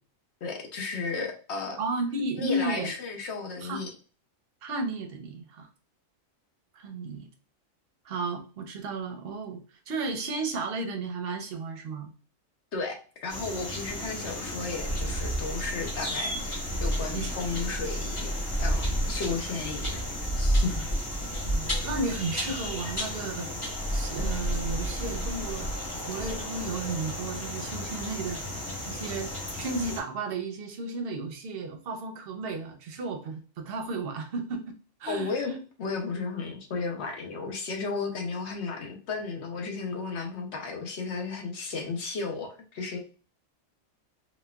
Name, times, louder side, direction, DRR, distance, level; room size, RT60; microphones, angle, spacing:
voice 1, 0.4-1.8 2.4-3.9 12.7-18.3 18.6-20.0 20.4-20.8 35.1-43.0, left 4 dB, 65° left, 3 dB, 0.9 m, -34 dB
voice 2, 1.8-2.9 3.6-3.8 4.6-5.7 6.7-7.3 8.0-12.1 17.1-17.4 21.4-23.5 23.9-25.7 26.0-34.7 35.0-35.4, right 3 dB, 55° right, 4 dB, 0.8 m, -33 dB
sound 1, 13.3-30.0, equal, 25° left, 0.9 m, -31 dB
4.0 x 2.2 x 2.2 m, 0.37 s
omnidirectional pair, 1.4 m